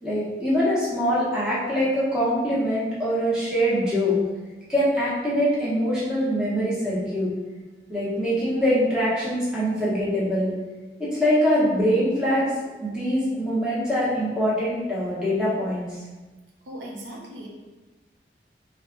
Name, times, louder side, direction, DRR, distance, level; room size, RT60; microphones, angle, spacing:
voice 1, 0.0-4.2 4.7-7.3 7.9-10.5 11.0-16.0, equal, 5° right, -10 dB, 1.1 m, -23 dB
voice 2, 16.6-17.5, right 1 dB, 90° right, -3 dB, 0.8 m, -38 dB
3.8 x 2.3 x 3.8 m, 1.2 s
head